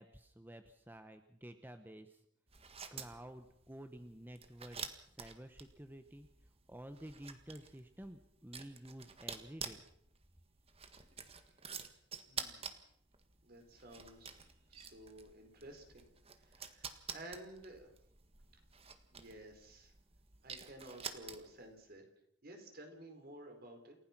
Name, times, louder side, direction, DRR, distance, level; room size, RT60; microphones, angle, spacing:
voice 1, 0.0-2.2 2.9-4.8 5.1-6.3 6.7-9.8, right 1 dB, 10° right, 8 dB, 1.0 m, -51 dB
sound 1, 2.5-21.7, right 6 dB, 30° right, 1.6 m, -49 dB
voice 2, 12.3-12.8 13.4-16.1 16.4-17.9 19.1-19.9 20.4-22.0 22.4-24.0, right 1 dB, 50° right, 4 dB, 4.7 m, -53 dB
28.5 x 16.0 x 6.0 m, 0.72 s
head